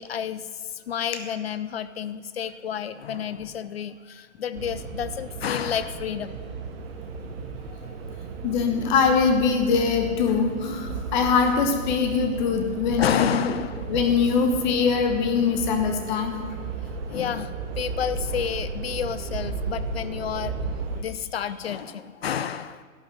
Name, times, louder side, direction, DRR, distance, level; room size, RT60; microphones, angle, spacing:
voice 1, 0.0-6.4 13.0-13.9 16.8-20.6 21.0-22.8, left 8 dB, 50° left, 14 dB, 0.5 m, -30 dB
sound 1, 4.5-21.0, right 4 dB, 45° right, 1.0 m, -34 dB
voice 2, 8.4-13.5 13.9-16.4, left 5 dB, 30° left, 5 dB, 1.1 m, -22 dB
11.5 x 5.6 x 7.6 m, 1.5 s
figure-of-eight pair, 125°, 42 cm